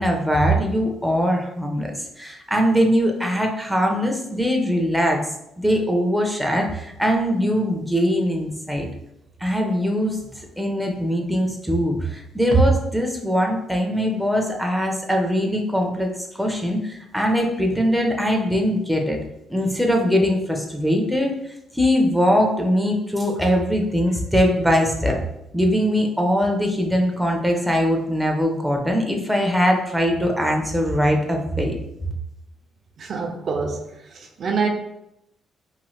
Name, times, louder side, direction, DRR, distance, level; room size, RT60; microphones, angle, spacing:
voice 1, 0.0-5.2 5.6-8.9 9.4-19.2 19.5-21.3 21.7-25.2 25.5-31.7, equal, ahead, 1 dB, 0.5 m, -21 dB
voice 2, 33.0-33.8 34.2-34.7, right 5 dB, 55° right, 3 dB, 0.4 m, -23 dB
3.0 x 2.7 x 2.3 m, 0.82 s
cardioid pair, 90°, 0 cm